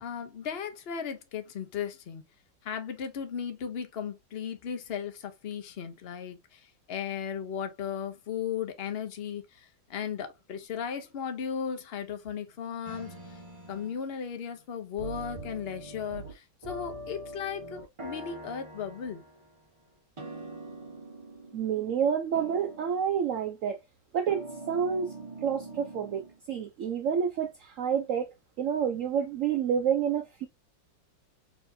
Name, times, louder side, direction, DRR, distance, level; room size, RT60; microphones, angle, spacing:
voice 1, 0.0-2.2 2.6-13.4 13.7-19.2, left 7 dB, 50° left, 0.7 m, -36 dB
sound 1, 12.8-14.0 15.0-16.3 16.6-19.6 20.2-22.1 22.3-23.2 24.3-26.4, right 2 dB, 25° right, 0.7 m, -43 dB
voice 2, 21.5-23.8 24.1-25.1 25.4-30.5, right 8 dB, 75° right, 0.7 m, -29 dB
4.4 x 3.5 x 2.6 m
omnidirectional pair, 2.0 m